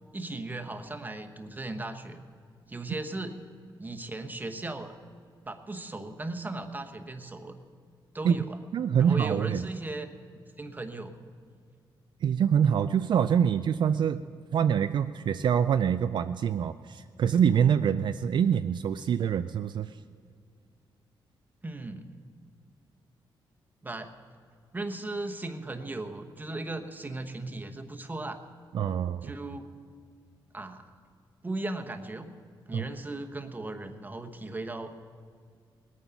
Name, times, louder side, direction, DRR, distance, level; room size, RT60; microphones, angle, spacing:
voice 1, 0.1-2.2 2.7-3.5 3.8-4.9 5.4-7.6 8.1-8.6 9.0-10.1 10.6-11.1 21.6-22.0 23.8-24.1 24.7-28.4 29.2-29.7 30.5-30.8 31.4-32.3 32.7-34.9, right 2 dB, 20° right, 6 dB, 1.1 m, -37 dB
voice 2, 8.7-9.6 12.2-14.2 14.5-20.0 28.7-29.3 32.7-32.8, right 8 dB, 60° right, 10 dB, 0.4 m, -25 dB
20.0 x 9.1 x 5.9 m, 2.2 s
cardioid pair, 105°, 9 cm